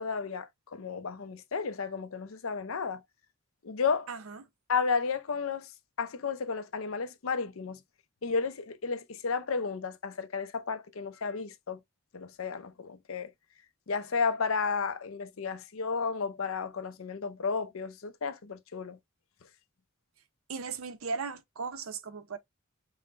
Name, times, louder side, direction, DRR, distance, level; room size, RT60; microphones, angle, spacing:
voice 1, 0.0-3.0 3.6-4.1 4.7-5.7 6.0-7.8 8.2-11.8 12.1-13.3 13.9-19.0, left 5 dB, 75° left, 0.6 m, -32 dB
voice 2, 4.1-4.4 20.5-22.4, right 5 dB, 80° right, 0.7 m, -37 dB
5.6 x 2.2 x 2.5 m
head